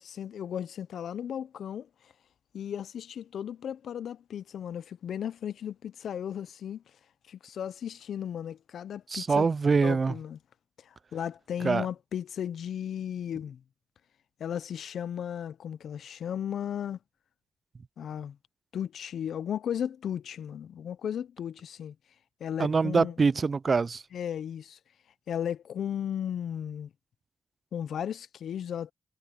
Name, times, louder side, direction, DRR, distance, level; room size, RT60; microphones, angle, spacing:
voice 1, 0.0-1.9 2.5-6.8 7.3-9.5 9.8-10.4 11.1-13.6 14.4-17.0 18.0-18.4 18.7-21.9 22.4-23.1 24.1-24.8 25.3-26.9 27.7-28.9, left 9 dB, 80° left, 0.5 m, -35 dB
voice 2, 9.1-10.1 11.6-11.9 22.6-24.0, right 4 dB, 50° right, 0.4 m, -24 dB
cardioid pair, 55°, 0 cm